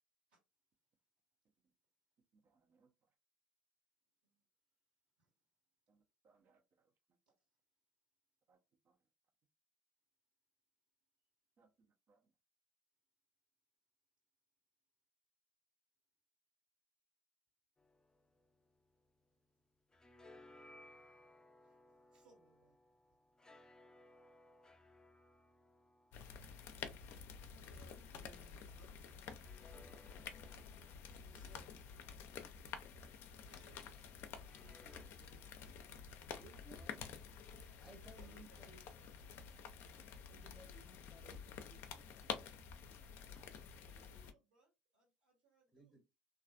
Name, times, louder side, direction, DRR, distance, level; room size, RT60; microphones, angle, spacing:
voice 1, 2.3-3.1 5.9-7.2 8.5-8.6 8.8-9.0 11.6-12.3, right 4 dB, 45° right, 0.7 m, -75 dB
sound 1, 17.8-19.4 19.7-28.4 29.3-33.4 34.3-35.0, left 1 dB, 15° left, 0.6 m, -65 dB
voice 2, 22.1-22.8 26.1-29.5 30.3-31.9 33.4-33.8 34.8-35.8 37.4-38.6 38.9-39.1 43.3-43.5 43.8-46.0, right 3 dB, 75° right, 1.4 m, -69 dB
sound 2, 26.1-44.3, left 7 dB, 55° left, 0.5 m, -50 dB
voice 3, 35.8-37.4 37.8-38.8 40.3-42.5 45.7-46.0, right 3 dB, 10° right, 0.9 m, -62 dB
3.1 x 2.5 x 2.4 m
figure-of-eight pair, 55°, 5 cm